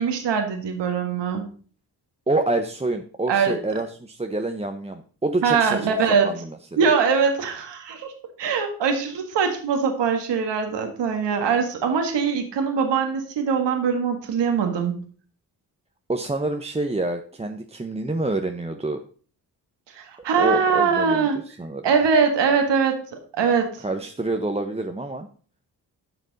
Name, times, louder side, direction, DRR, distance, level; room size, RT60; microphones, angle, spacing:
voice 1, 0.0-1.5 3.3-3.5 5.4-6.3 6.8-8.1 8.4-14.9 19.9-21.4 21.8-23.8, right 6 dB, 85° right, 5 dB, 1.7 m, -22 dB
voice 2, 2.3-5.9 6.2-6.9 16.1-19.0 20.4-21.9 23.8-25.3, right 2 dB, 15° right, 5 dB, 0.8 m, -27 dB
11.0 x 6.1 x 4.0 m, 0.43 s
cardioid pair, 55°, 42 cm